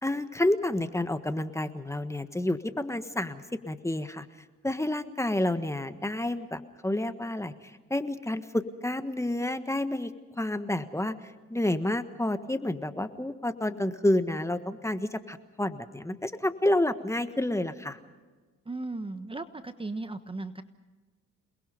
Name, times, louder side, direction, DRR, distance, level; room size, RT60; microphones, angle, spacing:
voice 1, 0.0-4.3 4.6-7.5 7.9-10.1 10.4-11.1 11.5-18.0, left 1 dB, 10° left, 10 dB, 1.4 m, -29 dB
voice 2, 18.6-20.6, right 2 dB, 15° right, 10 dB, 1.1 m, -36 dB
28.5 x 20.5 x 5.3 m, 1.3 s
cardioid pair, 90°, 30 cm